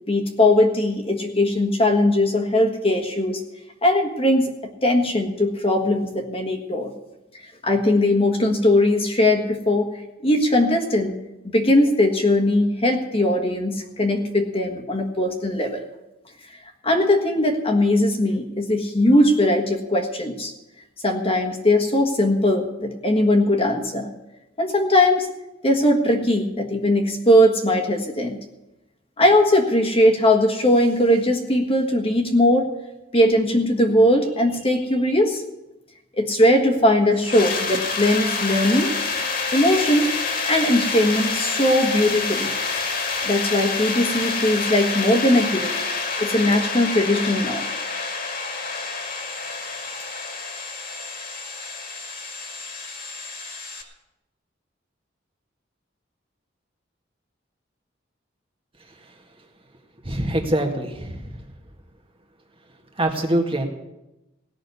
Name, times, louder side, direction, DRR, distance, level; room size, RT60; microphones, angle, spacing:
voice 1, 0.1-3.4 3.8-4.5 4.8-6.9 7.6-9.9 10.2-11.2 11.5-15.8 16.8-20.5 21.0-24.1 24.6-25.3 25.6-28.4 29.2-32.7 33.1-35.4 36.2-38.9 39.5-40.1 40.4-42.5 43.2-45.8 46.2-47.7, left 1 dB, 30° left, 2 dB, 1.6 m, -19 dB
sound 1, 37.2-53.8, left 4 dB, 50° left, 2.1 m, -28 dB
voice 2, 60.1-61.3 63.0-63.7, right 1 dB, 30° right, 2 dB, 1.8 m, -23 dB
17.5 x 6.4 x 9.7 m, 0.96 s
head